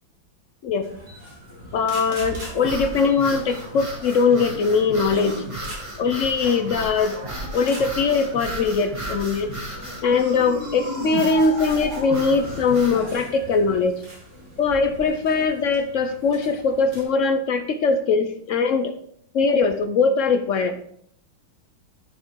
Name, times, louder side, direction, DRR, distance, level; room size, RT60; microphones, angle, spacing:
sound 1, 0.8-17.0, right 1 dB, 45° right, 3.3 m, -38 dB
voice 1, 1.7-5.4 6.0-7.2 7.5-9.5 10.0-14.0 14.6-18.9 19.3-20.8, left 4 dB, 75° left, 7 dB, 0.7 m, -21 dB
sound 2, 2.6-13.0, right 1 dB, 15° right, 1.9 m, -34 dB
10.5 x 6.5 x 4.5 m, 0.67 s
omnidirectional pair, 2.2 m